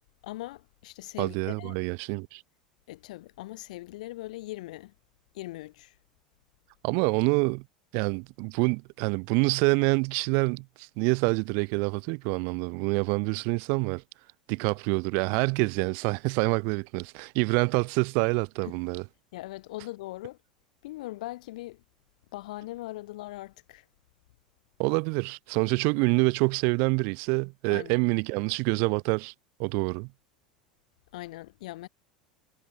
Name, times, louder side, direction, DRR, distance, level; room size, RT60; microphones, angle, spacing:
voice 1, 0.2-1.8 2.9-4.9 5.3-5.9 18.6-18.8 19.3-20.4 20.8-21.8 22.3-23.8 27.7-28.0 31.1-31.9, left 18 dB, 70° left, 2.0 m, -40 dB
voice 2, 1.2-2.4 6.8-7.6 7.9-14.0 14.5-19.0 24.8-29.3 29.6-30.1, right 36 dB, 60° right, 1.5 m, -26 dB
hypercardioid pair, 85°, 4 cm